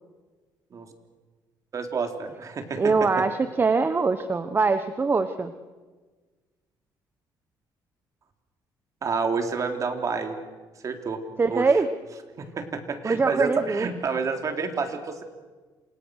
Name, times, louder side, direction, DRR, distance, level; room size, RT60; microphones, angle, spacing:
voice 1, 1.7-3.2 9.0-10.4 10.8-11.2 11.5-11.7 12.4-15.2, right 5 dB, 45° right, 5 dB, 3.6 m, -29 dB
voice 2, 2.8-5.5 11.4-11.9 13.0-13.9, right 4 dB, 30° right, 10 dB, 1.2 m, -23 dB
29.0 x 27.5 x 6.6 m, 1.3 s
cardioid pair, 105°, 8 cm